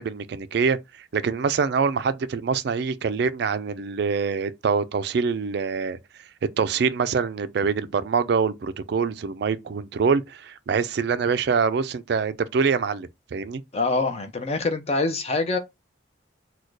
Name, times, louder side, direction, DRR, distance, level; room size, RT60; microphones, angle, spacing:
voice 1, 0.0-6.0 6.6-13.6, right 5 dB, 55° right, 0.3 m, -25 dB
voice 2, 13.7-15.6, left 3 dB, 30° left, 0.6 m, -25 dB
4.2 x 2.2 x 4.6 m
head